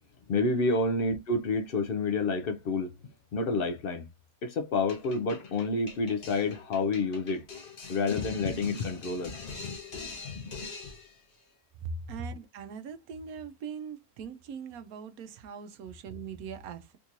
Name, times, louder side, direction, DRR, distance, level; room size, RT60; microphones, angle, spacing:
voice 1, 0.3-2.9 3.3-4.1 4.4-9.8 10.4-10.7, left 3 dB, 60° left, 0.6 m, -29 dB
sound 1, 4.9-11.2, left 4 dB, 40° left, 1.0 m, -43 dB
voice 2, 11.8-17.0, right 5 dB, 80° right, 1.0 m, -40 dB
3.6 x 2.8 x 2.5 m
omnidirectional pair, 1.5 m